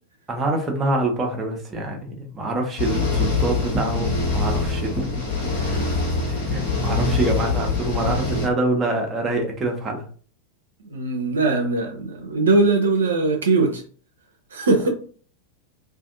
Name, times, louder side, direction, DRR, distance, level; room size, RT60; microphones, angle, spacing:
voice 1, 0.3-6.0 6.3-10.1, right 2 dB, 20° right, 0.7 m, -26 dB
sound 1, 2.8-8.5, left 3 dB, 55° left, 1.2 m, -24 dB
voice 2, 10.8-13.8 14.5-14.9, right 3 dB, 70° right, 0.5 m, -20 dB
2.5 x 2.5 x 2.5 m
figure-of-eight pair, 90°, 0 cm